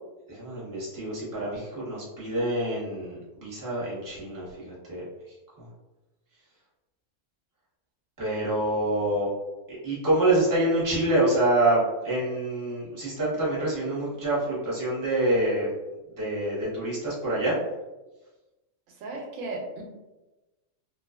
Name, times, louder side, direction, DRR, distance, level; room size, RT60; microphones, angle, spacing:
voice 1, 0.3-5.0 5.6-5.7 8.2-9.3 9.7-15.7 16.2-17.6, right 1 dB, 15° right, -7 dB, 0.8 m, -26 dB
voice 2, 19.0-19.8, right 2 dB, 85° right, 0 dB, 1.0 m, -35 dB
2.7 x 2.3 x 2.3 m, 1.1 s
omnidirectional pair, 1.4 m